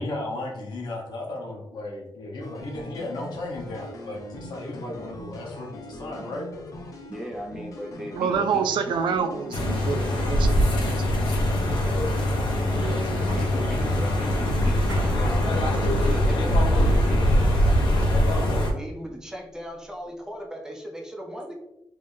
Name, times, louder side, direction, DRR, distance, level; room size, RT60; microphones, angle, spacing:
voice 1, 0.0-6.5 8.2-8.5 11.8-12.2, left 1 dB, 65° left, -2 dB, 1.0 m, -35 dB
sound 1, 2.4-15.0 15.3-16.0 16.3-18.1, left 1 dB, 45° left, 0.5 m, -42 dB
voice 2, 7.1-8.7 13.2-15.5 15.8-18.2 18.7-21.5, equal, 10° right, 0 dB, 0.5 m, -38 dB
voice 3, 8.1-11.3 12.3-13.5, right 6 dB, 90° right, 8 dB, 0.4 m, -29 dB
sound 2, 9.5-18.7, equal, 90° left, 0.8 m, -22 dB
sound 3, 14.9-19.5, equal, 55° right, 1.3 m, -41 dB
3.4 x 3.4 x 2.6 m, 0.89 s
wide cardioid pair, 170°, 8 cm